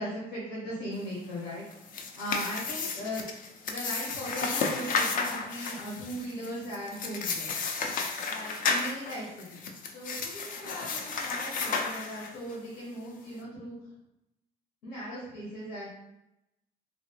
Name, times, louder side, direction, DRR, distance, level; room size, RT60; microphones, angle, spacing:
voice 1, 0.0-1.6 2.1-3.3 3.6-7.5 8.3-13.8 14.8-15.9, equal, 85° left, -6 dB, 1.0 m, -38 dB
sound 1, 1.7-12.6, left 4 dB, 55° left, 0.5 m, -33 dB
2.9 x 2.7 x 2.8 m, 0.87 s
cardioid pair, 110°, 17 cm